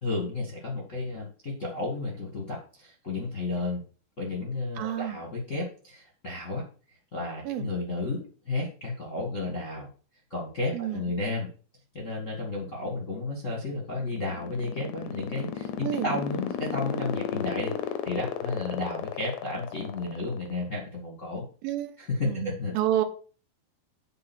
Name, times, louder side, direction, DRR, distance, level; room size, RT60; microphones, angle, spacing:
voice 1, 0.0-3.8 4.2-6.6 7.1-9.9 10.3-11.5 11.9-17.7 18.0-21.4 22.0-22.7, left 2 dB, 35° left, -1 dB, 1.2 m, -32 dB
voice 2, 4.8-5.2 7.5-7.7 10.7-11.0 15.8-16.2 21.6-21.9 22.2-23.0, right 12 dB, 80° right, 8 dB, 2.7 m, -29 dB
sound 1, 13.9-20.5, left 9 dB, 75° left, 2.0 m, -32 dB
9.0 x 4.0 x 6.1 m, 0.39 s
omnidirectional pair, 4.2 m